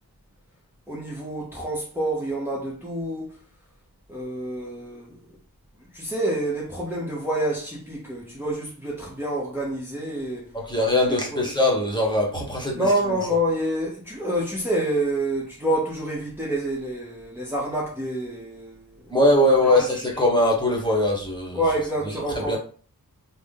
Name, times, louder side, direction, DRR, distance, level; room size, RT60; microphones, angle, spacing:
voice 1, 0.9-3.4 4.1-5.2 5.9-10.5 11.1-11.4 12.7-19.1 19.5-20.2 21.5-22.6, right 1 dB, 5° right, 1.0 m, -28 dB
voice 2, 10.7-13.1 19.1-21.6 22.5-22.6, left 1 dB, 10° left, 1.3 m, -21 dB
3.6 x 2.2 x 3.6 m
cardioid pair, 45°, 36 cm